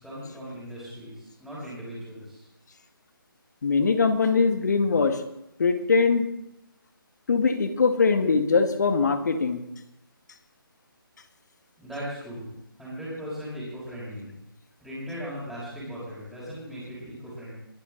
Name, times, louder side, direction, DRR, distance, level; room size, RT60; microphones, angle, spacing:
voice 1, 0.0-2.5 11.8-14.3 14.8-17.5, equal, ahead, -13 dB, 5.7 m, -38 dB
voice 2, 3.6-5.2 5.6-6.2 7.3-9.6, left 4 dB, 50° left, 9 dB, 1.6 m, -22 dB
22.5 x 11.5 x 3.9 m, 0.85 s
figure-of-eight pair, 150°, 12 cm